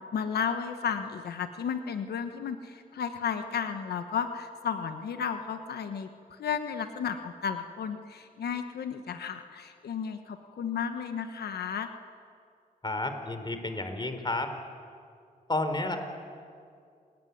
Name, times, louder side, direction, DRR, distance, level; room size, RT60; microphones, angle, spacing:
voice 1, 0.1-6.1 6.4-11.9, left 7 dB, 90° left, 8 dB, 1.3 m, -33 dB
voice 2, 12.8-14.5 15.5-16.1, left 2 dB, 30° left, 7 dB, 4.1 m, -31 dB
28.0 x 20.0 x 9.5 m, 2.3 s
cardioid pair, 60°, 16 cm